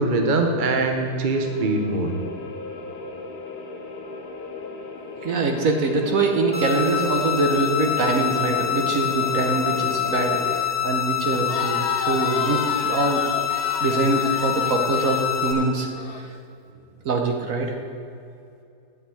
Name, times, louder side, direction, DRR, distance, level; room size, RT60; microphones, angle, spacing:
voice 1, 0.0-2.1, right 2 dB, 40° right, 4 dB, 0.8 m, -22 dB
sound 1, 1.3-10.6, left 4 dB, 75° left, 1.6 m, -35 dB
voice 2, 5.2-13.2 13.8-15.9 17.0-17.8, right 3 dB, 55° right, 3 dB, 1.3 m, -23 dB
sound 2, 6.5-15.5, left 10 dB, 20° left, 0.9 m, -26 dB
Crowd, 11.3-16.2, left 6 dB, 55° left, 0.8 m, -33 dB
9.8 x 5.5 x 8.4 m, 2.5 s
omnidirectional pair, 1.8 m